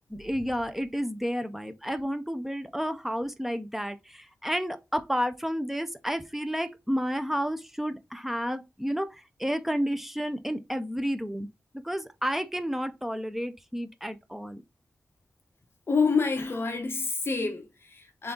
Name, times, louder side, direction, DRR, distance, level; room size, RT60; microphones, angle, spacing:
voice 1, 0.1-9.1 9.4-11.5 11.7-14.6, equal, 5° right, 0.4 m, -31 dB
voice 2, 15.9-18.3, left 4 dB, 45° left, 0.8 m, -27 dB
3.8 x 3.4 x 3.6 m
wide cardioid pair, 150°, 5 cm